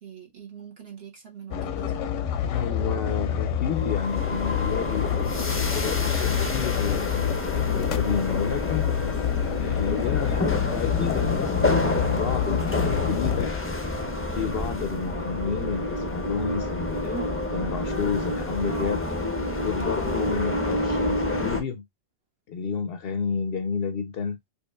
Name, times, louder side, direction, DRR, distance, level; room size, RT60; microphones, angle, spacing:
voice 1, 0.0-2.1, right 8 dB, 55° right, 1.4 m, -43 dB
sound 1, 1.5-13.5, left 9 dB, 90° left, 1.0 m, -27 dB
voice 2, 2.5-8.9 9.5-13.6 14.3-19.0 19.6-21.8 22.5-24.4, left 6 dB, 65° left, 0.7 m, -31 dB
sound 2, 3.8-21.6, left 2 dB, 15° left, 0.4 m, -29 dB
4.4 x 2.8 x 2.2 m
omnidirectional pair, 1.2 m